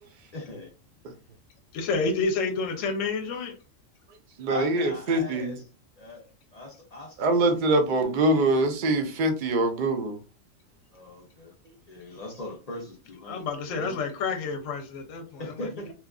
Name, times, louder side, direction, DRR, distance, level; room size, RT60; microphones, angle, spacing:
voice 1, 0.3-0.7 1.9-2.2 4.5-5.6 6.0-6.2 6.5-8.1 8.5-8.7 10.9-11.5 11.9-13.4 15.4-15.9, left 2 dB, 60° left, 0.4 m, -40 dB
voice 2, 1.7-3.6 13.3-15.9, left 4 dB, 75° left, 0.9 m, -29 dB
voice 3, 4.4-5.6 7.2-10.2 13.7-13.9, right 2 dB, 65° right, 0.5 m, -24 dB
2.9 x 2.3 x 2.2 m
omnidirectional pair, 1.4 m